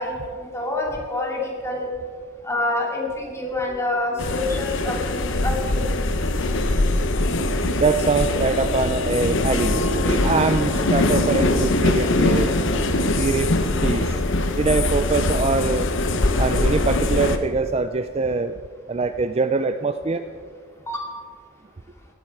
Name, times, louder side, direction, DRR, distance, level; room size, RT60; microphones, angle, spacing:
voice 1, 0.0-1.9 2.4-5.9 20.9-21.1, left 2 dB, 15° left, -1 dB, 2.6 m, -27 dB
sound 1, 4.2-17.4, left 2 dB, 60° left, 1.0 m, -22 dB
sound 2, 7.1-12.9, equal, 80° left, 3.8 m, -31 dB
voice 2, 7.7-12.5 12.8-12.9 13.2-13.5 13.8-14.2 14.5-15.9 16.4-18.6 18.9-20.2, right 4 dB, 30° right, 10 dB, 0.4 m, -23 dB
17.5 x 13.5 x 4.7 m, 2.1 s
head